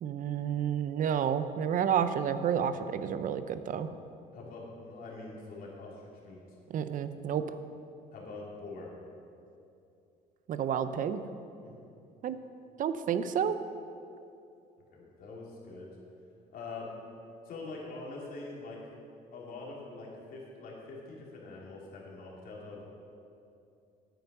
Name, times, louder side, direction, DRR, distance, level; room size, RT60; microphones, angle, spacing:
voice 1, 0.0-3.9 6.7-7.4 10.5-11.2 12.2-12.4 12.8-13.6, right 8 dB, 50° right, 12 dB, 0.6 m, -30 dB
voice 2, 4.3-6.4 8.1-8.9 11.6-11.8 14.9-15.9 16.5-16.9 17.4-19.0 19.3-22.9, left 3 dB, 60° left, -4 dB, 2.9 m, -44 dB
9.2 x 9.0 x 5.5 m, 2.6 s
cardioid pair, 110°, 17 cm